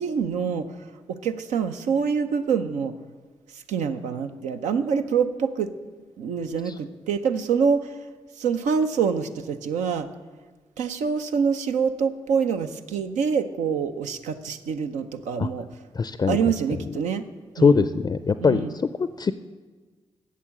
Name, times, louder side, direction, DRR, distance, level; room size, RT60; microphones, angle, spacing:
voice 1, 0.0-2.9 3.5-5.7 6.2-10.1 10.8-15.8 16.3-17.3 17.6-17.9 18.4-18.7, right 6 dB, 90° right, 8 dB, 0.6 m, -26 dB
voice 2, 16.0-16.4 17.6-18.6 19.2-19.3, left 5 dB, 30° left, 13 dB, 0.4 m, -20 dB
8.3 x 7.2 x 7.5 m, 1.4 s
supercardioid pair, 55°, 12 cm